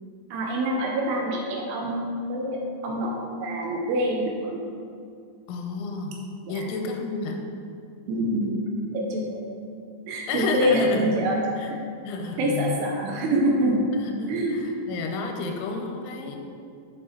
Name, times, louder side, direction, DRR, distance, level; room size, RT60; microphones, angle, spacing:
voice 1, 0.3-4.6 6.4-6.6 8.1-8.6 8.9-9.4 10.1-11.8 12.4-13.9 14.3-14.6, right 1 dB, 80° right, -1 dB, 2.5 m, -26 dB
voice 2, 5.5-6.2 6.5-7.4 10.3-11.1 11.6-11.7 12.0-12.8 14.0-16.4, left 4 dB, 85° left, 3 dB, 3.0 m, -31 dB
8.0 x 6.5 x 2.8 m, 2.4 s
omnidirectional pair, 5.4 m